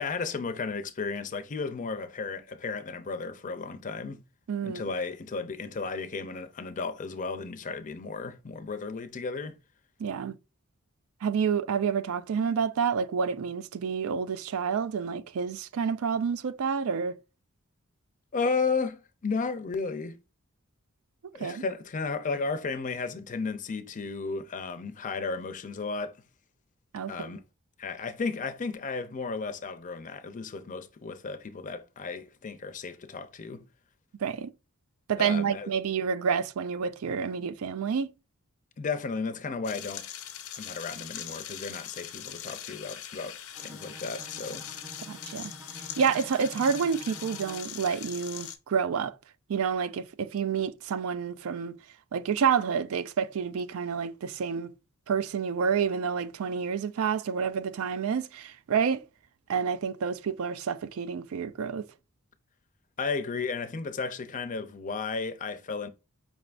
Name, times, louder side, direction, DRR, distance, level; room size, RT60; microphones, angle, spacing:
voice 1, 0.0-4.2 4.6-9.6 18.3-20.2 21.3-26.2 27.1-27.4 27.8-33.6 35.2-35.7 38.8-40.1 40.5-44.6 63.0-65.9, left 4 dB, 35° left, 0.5 m, -34 dB
voice 2, 4.5-4.8 10.0-10.3 11.2-17.2 21.4-21.6 26.9-27.3 34.2-34.5 35.1-38.1 45.1-45.5 46.0-49.1 49.5-51.8 52.1-54.7 55.1-59.0 59.5-61.9, right 6 dB, 70° right, 0.4 m, -29 dB
sound 1, 39.6-48.6, left 10 dB, 85° left, 0.6 m, -41 dB
Bowed string instrument, 43.5-47.8, equal, 10° right, 0.5 m, -48 dB
5.1 x 3.3 x 2.5 m
head